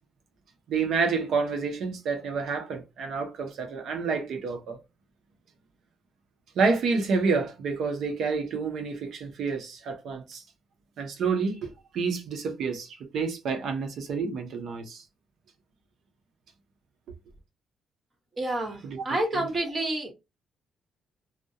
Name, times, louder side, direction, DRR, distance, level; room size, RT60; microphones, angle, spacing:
voice 1, 0.7-4.8 6.5-10.4 11.0-15.0 18.8-19.5, right 4 dB, 70° right, 0.6 m, -29 dB
voice 2, 18.4-20.1, right 1 dB, 35° right, 1.1 m, -29 dB
2.2 x 2.0 x 2.7 m
cardioid pair, 90°, 0 cm